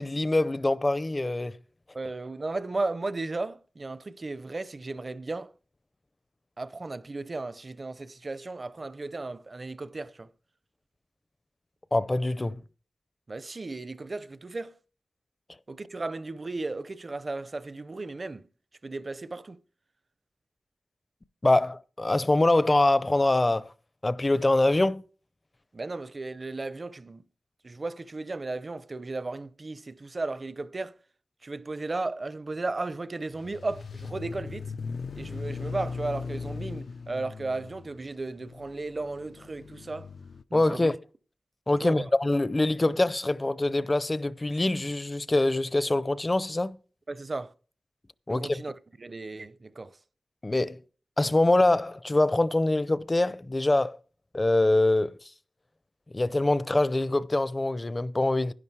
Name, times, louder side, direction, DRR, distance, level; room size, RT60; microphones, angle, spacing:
voice 1, 0.0-1.6 11.9-12.6 21.4-23.7 24.0-25.0 40.5-41.0 41.7-46.8 48.3-48.6 50.4-50.8 51.2-54.0 54.3-55.2 56.1-58.5, left 2 dB, 25° left, 0.5 m, -24 dB
voice 2, 1.9-5.5 6.6-10.3 13.3-14.7 15.7-18.4 18.8-19.6 25.7-27.2 27.6-31.0 31.4-34.7 35.2-40.1 40.5-40.9 41.8-42.1 47.1-47.5 48.3-49.9, right 3 dB, 40° right, 0.6 m, -35 dB
sound 1, 33.3-40.4, left 4 dB, 80° left, 0.5 m, -38 dB
11.0 x 10.5 x 4.7 m
wide cardioid pair, 100°, 0 cm